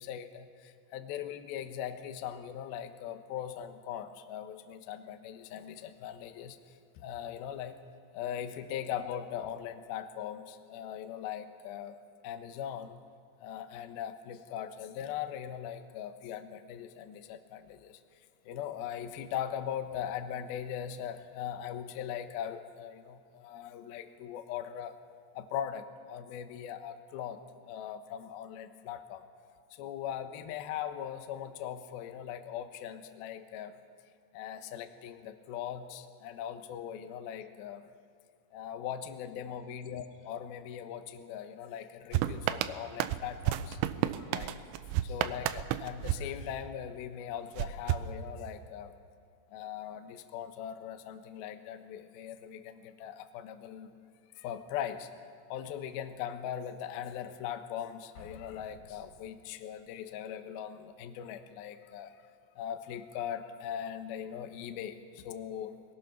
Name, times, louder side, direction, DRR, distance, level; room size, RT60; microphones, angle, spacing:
voice 1, 0.0-6.6 7.0-7.8 8.1-12.0 12.2-13.0 13.4-18.0 18.4-24.9 25.4-27.4 27.6-29.2 29.7-33.8 34.3-37.9 38.5-43.8 44.2-44.6 45.0-48.9 49.5-53.9 54.4-55.1 55.5-62.1 62.6-65.8, left 9 dB, 90° left, 8 dB, 2.1 m, -40 dB
sound 1, 42.1-47.0 47.6-48.8, right 12 dB, 80° right, 2.8 m, -33 dB
Explosion, 58.1-59.8, left 2 dB, 50° left, 4.3 m, -54 dB
25.5 x 20.5 x 5.9 m, 2.3 s
omnidirectional pair, 6.0 m